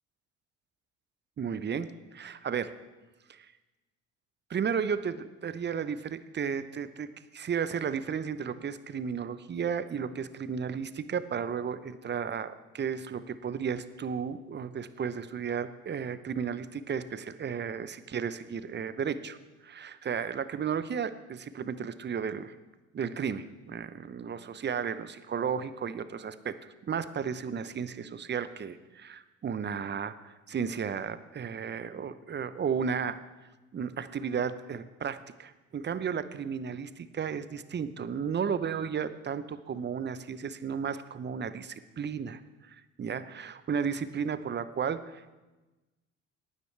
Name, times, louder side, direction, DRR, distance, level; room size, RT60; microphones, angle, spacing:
voice 1, 1.4-2.7 3.3-3.5 4.5-7.1 7.3-19.4 19.6-22.5 22.9-26.6 26.8-33.2 33.7-45.3, right 7 dB, 25° right, 13 dB, 0.8 m, -34 dB
18.5 x 9.4 x 3.3 m, 1.1 s
hypercardioid pair, 55°, 39 cm